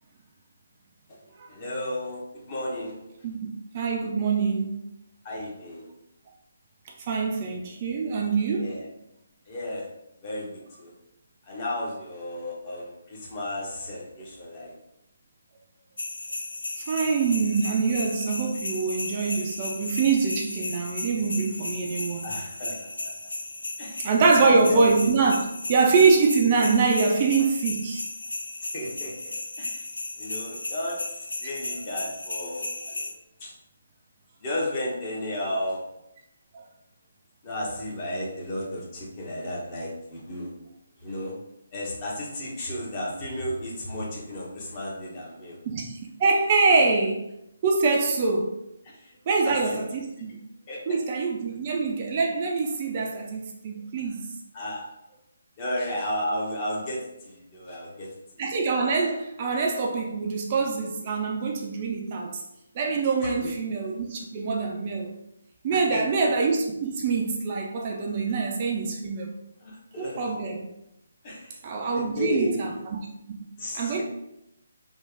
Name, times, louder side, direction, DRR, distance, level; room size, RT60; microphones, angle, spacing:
voice 1, 1.5-2.9 5.2-5.9 8.6-8.9 9.5-9.8 10.2-10.9 11.5-14.7 22.2-23.1 23.8-24.0 24.4-24.9 28.7-29.9 30.2-31.0 31.4-33.1 33.4-33.5 34.4-35.8 37.4-40.5 41.0-41.3 41.7-45.6 49.0-49.1 49.4-49.6 50.7-51.0 54.5-54.8 55.6-58.1 58.4-58.5 63.2-63.5 65.7-66.0 69.6-70.4 71.2-71.5 71.9-72.8 73.6-74.0, left 1 dB, 30° left, -4 dB, 1.0 m, -33 dB
voice 2, 3.2-4.8 7.1-8.7 16.9-22.3 24.0-25.4 25.7-28.0 36.5-36.6 45.7-47.2 47.6-48.5 49.3-50.4 50.9-54.3 58.4-62.4 62.8-65.1 65.6-69.3 70.0-70.7 71.6-72.7 73.7-74.0, right 4 dB, 35° right, 0 dB, 0.4 m, -24 dB
sound 1, 16.0-33.1, left 2 dB, 70° left, 0.4 m, -35 dB
3.3 x 2.3 x 3.4 m, 0.85 s
figure-of-eight pair, 145°, 0 cm